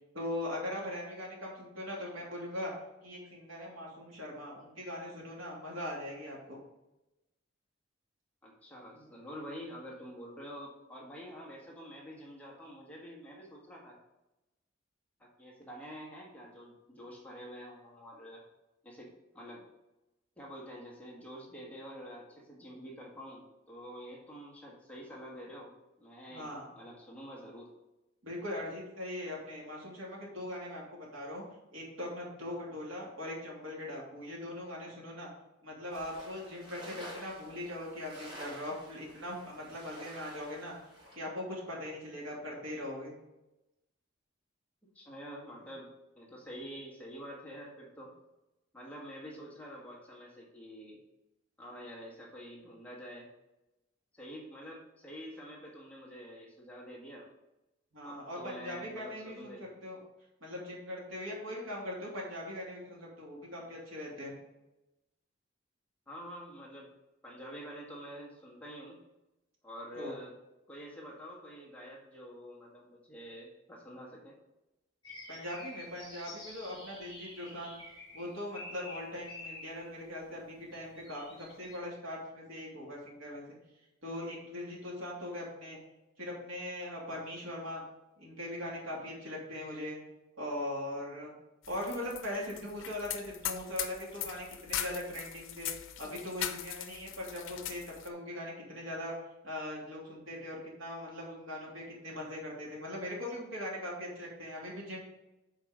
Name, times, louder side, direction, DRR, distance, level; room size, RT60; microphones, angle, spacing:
voice 1, 0.1-2.7 3.0-6.6 26.3-26.7 28.2-31.4 31.7-35.3 35.6-40.7 41.1-43.1 57.9-60.0 60.4-64.3 69.9-70.1 75.3-77.8 78.1-83.6 84.0-85.8 86.2-87.8 88.2-90.0 90.4-91.3 91.7-95.7 96.0-99.1 99.4-105.0, left 1 dB, 90° right, -3 dB, 2.8 m, -40 dB
voice 2, 8.4-14.0 15.2-18.4 18.8-19.6 20.4-25.7 26.0-27.7 44.9-48.1 48.7-51.0 51.6-53.3 54.1-57.3 58.0-59.7 66.1-66.9 67.2-69.0 69.6-70.3 70.7-74.4, equal, 5° left, -3 dB, 1.7 m, -47 dB
sound 1, 35.9-41.1, equal, 25° right, 3.1 m, -50 dB
sound 2, 75.0-79.9 80.7-81.8, left 2 dB, 25° left, 3.2 m, -49 dB
sound 3, 91.6-98.1, left 10 dB, 85° left, 0.7 m, -40 dB
8.1 x 4.7 x 5.1 m, 0.96 s
head